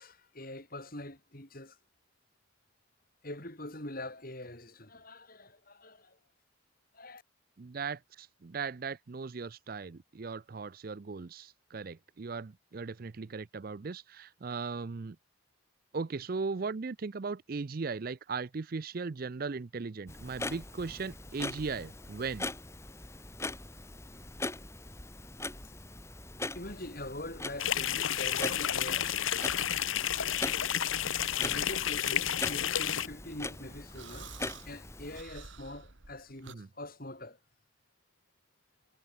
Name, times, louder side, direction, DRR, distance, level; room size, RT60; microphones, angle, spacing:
voice 1, 0.0-1.8 3.2-6.2 6.9-7.2 26.5-29.2 31.4-34.3 34.6-37.4, left 1 dB, 45° left, 4.8 m, -43 dB
voice 2, 7.6-15.2 15.9-22.5 31.4-31.6 36.5-36.7, right 4 dB, 45° right, 0.5 m, -38 dB
Clock, 20.1-35.2, left 2 dB, 15° left, 1.7 m, -41 dB
sound 1, 27.6-33.1, left 10 dB, 70° left, 1.1 m, -31 dB
sound 2, 33.1-36.5, right 5 dB, 60° right, 2.0 m, -52 dB
head